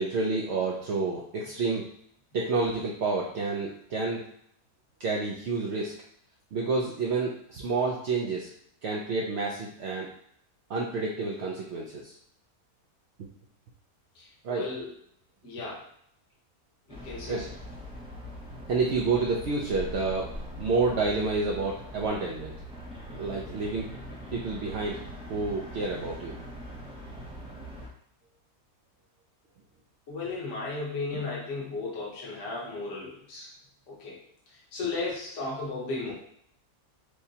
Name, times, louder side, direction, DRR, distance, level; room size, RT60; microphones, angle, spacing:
voice 1, 0.0-1.9 2.3-4.2 5.0-5.9 6.5-8.5 8.8-10.1 10.7-12.1 14.4-14.7 17.3-17.4 18.7-22.5 23.2-23.9 24.3-25.0 25.3-26.4, right 3 dB, 65° right, -2 dB, 0.6 m, -29 dB
voice 2, 14.5-14.9 15.4-15.8 16.9-17.4 30.1-33.5 33.9-34.2 34.7-36.1, left 3 dB, 55° left, -5 dB, 1.4 m, -34 dB
sound 1, 16.9-27.9, equal, 5° right, 0.4 m, -42 dB
6.4 x 2.2 x 2.7 m, 0.68 s
omnidirectional pair, 1.6 m